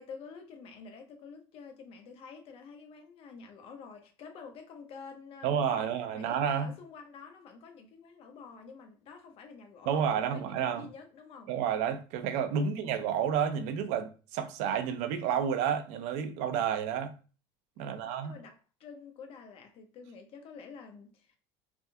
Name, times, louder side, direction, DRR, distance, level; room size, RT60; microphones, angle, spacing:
voice 1, 0.0-11.5 12.5-13.0 17.8-21.4, left 5 dB, 50° left, 0.8 m, -49 dB
voice 2, 5.4-6.7 9.9-10.9 11.5-17.1 17.8-18.3, right 8 dB, 65° right, 0.5 m, -30 dB
3.4 x 2.2 x 2.7 m
cardioid pair, 135°, 13 cm